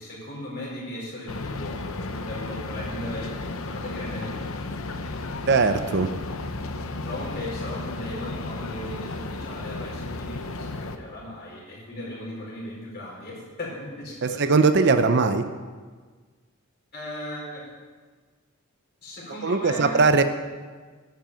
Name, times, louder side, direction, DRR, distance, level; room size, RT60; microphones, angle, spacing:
voice 1, 0.0-3.3 3.7-4.7 6.9-14.6 16.9-17.7 19.0-20.0, left 1 dB, 45° left, -4 dB, 4.6 m, -37 dB
sound 1, 1.3-11.0, left 2 dB, 65° left, 0.8 m, -33 dB
voice 2, 5.5-6.1 14.2-15.5 19.4-20.2, right 4 dB, 50° right, 9 dB, 0.6 m, -20 dB
10.5 x 7.9 x 8.8 m, 1.5 s
head